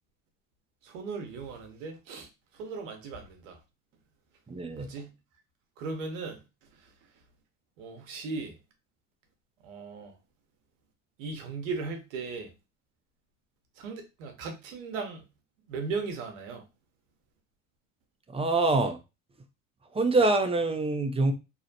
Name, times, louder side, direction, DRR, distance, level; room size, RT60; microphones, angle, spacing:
voice 1, 0.8-2.3 2.5-3.6 4.7-5.1 5.8-6.4 6.8-6.9 7.8-8.6 9.6-10.2 11.2-12.5 13.8-15.2 15.7-16.7, right 4 dB, 85° right, 0.8 m, -37 dB
voice 2, 4.5-4.9 18.3-19.0 19.9-21.3, right 2 dB, 15° right, 0.5 m, -25 dB
2.6 x 2.0 x 2.7 m
hypercardioid pair, 70°, 38 cm